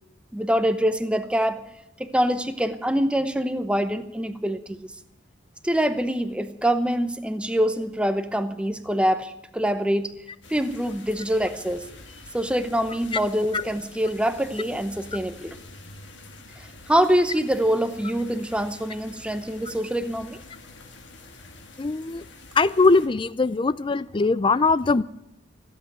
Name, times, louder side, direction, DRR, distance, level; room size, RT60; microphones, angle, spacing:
voice 1, 0.3-1.6 2.0-4.9 5.6-10.1 10.5-11.9 12.3-15.6 16.9-20.4, equal, 5° right, 9 dB, 0.8 m, -25 dB
sound 1, 10.4-23.1, left 3 dB, 65° left, 2.1 m, -46 dB
voice 2, 21.8-22.2 22.6-25.0, left 3 dB, 25° left, 18 dB, 0.4 m, -21 dB
15.5 x 8.4 x 9.4 m, 0.85 s
head